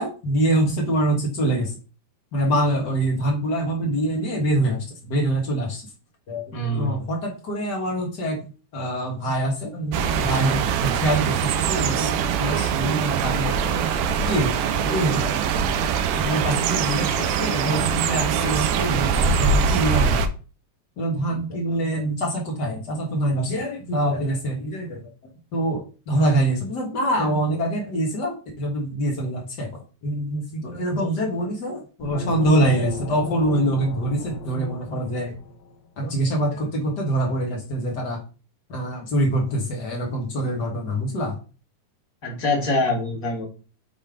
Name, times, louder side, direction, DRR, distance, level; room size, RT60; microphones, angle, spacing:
voice 1, 0.0-1.7 2.3-5.8 6.3-8.4 8.7-12.1 12.4-14.0 14.2-15.4 16.2-20.3 21.0-25.0 25.5-35.3 36.0-38.2 38.7-41.4, right 1 dB, 75° left, -1 dB, 0.9 m, -25 dB
voice 2, 6.5-7.0 42.2-43.5, left 2 dB, 35° left, -1 dB, 1.5 m, -24 dB
sound 1, 9.9-20.3, right 7 dB, 85° right, 2.5 m, -23 dB
sound 2, 32.0-35.7, left 1 dB, 90° left, 1.4 m, -34 dB
7.5 x 3.5 x 5.0 m, 0.34 s
omnidirectional pair, 4.4 m